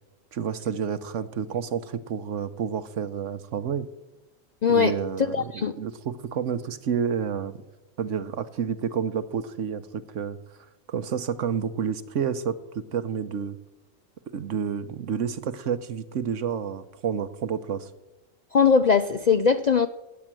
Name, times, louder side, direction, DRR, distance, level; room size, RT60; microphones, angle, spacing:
voice 1, 0.3-3.9 4.7-7.6 8.0-10.4 10.9-13.6 14.3-17.9, right 7 dB, 70° right, 12 dB, 1.2 m, -29 dB
voice 2, 4.6-4.9 5.3-5.7 18.5-19.9, left 6 dB, 55° left, 10 dB, 0.4 m, -20 dB
17.0 x 10.0 x 7.6 m, 1.1 s
omnidirectional pair, 1.3 m